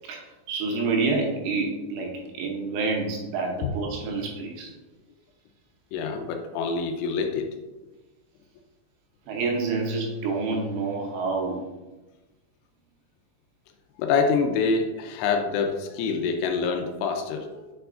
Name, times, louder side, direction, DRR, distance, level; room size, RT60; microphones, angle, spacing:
voice 1, 0.0-4.7 9.3-11.7, right 3 dB, 75° right, 0 dB, 2.7 m, -28 dB
voice 2, 5.9-7.5 14.0-17.7, left 5 dB, 85° left, 4 dB, 3.2 m, -26 dB
9.7 x 4.6 x 2.5 m, 1.1 s
omnidirectional pair, 5.8 m